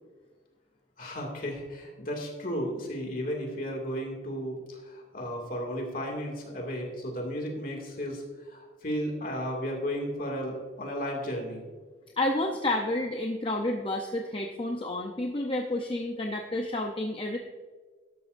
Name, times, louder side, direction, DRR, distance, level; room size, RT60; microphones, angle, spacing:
voice 1, 1.0-11.7, equal, 50° left, 0 dB, 2.3 m, -34 dB
voice 2, 12.2-17.4, left 1 dB, 30° left, 2 dB, 0.6 m, -30 dB
12.5 x 11.5 x 2.6 m, 1.4 s
head